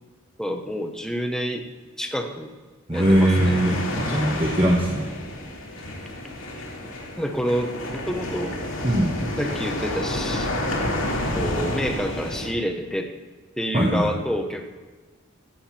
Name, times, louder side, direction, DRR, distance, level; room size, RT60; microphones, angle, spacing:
voice 1, 0.4-1.6 2.0-2.5 2.9-3.6 7.2-8.6 9.4-10.5 11.3-13.1 13.6-14.6, equal, 5° left, 4 dB, 1.0 m, -28 dB
sound 1, 2.9-12.5, left 1 dB, 75° left, 2.8 m, -30 dB
voice 2, 2.9-5.1 8.8-9.2 13.7-14.1, right 1 dB, 25° right, -2 dB, 1.4 m, -21 dB
15.5 x 8.1 x 4.4 m, 1.4 s
head